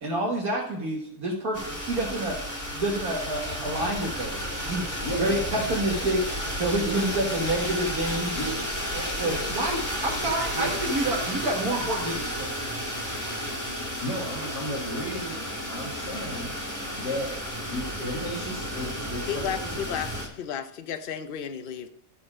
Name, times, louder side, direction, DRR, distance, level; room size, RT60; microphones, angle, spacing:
voice 1, 0.0-4.9 5.2-8.4 8.9-12.5, right 1 dB, 60° right, -2 dB, 1.9 m, -28 dB
sound 1, 1.5-20.3, equal, 10° left, 2.1 m, -32 dB
sound 2, 3.3-8.6, equal, 25° left, 2.3 m, -46 dB
voice 2, 5.0-5.8 6.8-7.0 8.3-8.6 9.2-9.4 10.6-10.7 14.0-16.6 17.0-17.3 17.6-19.9, equal, 75° left, -6 dB, 2.6 m, -34 dB
voice 3, 19.3-21.9, left 8 dB, 60° left, 10 dB, 0.5 m, -33 dB
12.5 x 4.3 x 4.9 m, 0.71 s
omnidirectional pair, 1.8 m